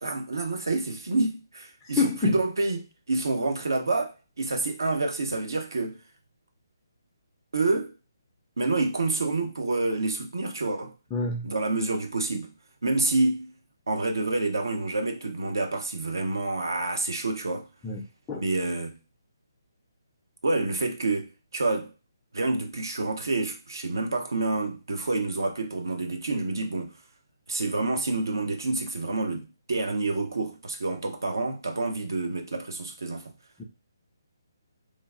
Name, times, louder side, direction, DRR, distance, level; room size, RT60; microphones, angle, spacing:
voice 1, 0.0-6.0 7.5-7.9 8.6-10.9 11.4-12.5 12.8-13.5 13.9-17.7 18.3-19.0 20.4-21.9 22.3-27.0 27.5-33.3, right 2 dB, 65° right, 0.6 m, -28 dB
voice 2, 1.8-2.3 11.1-11.5 17.8-18.4 33.6-33.7, left 4 dB, 10° left, 0.4 m, -28 dB
3.2 x 2.5 x 2.4 m
figure-of-eight pair, 140°, 2 cm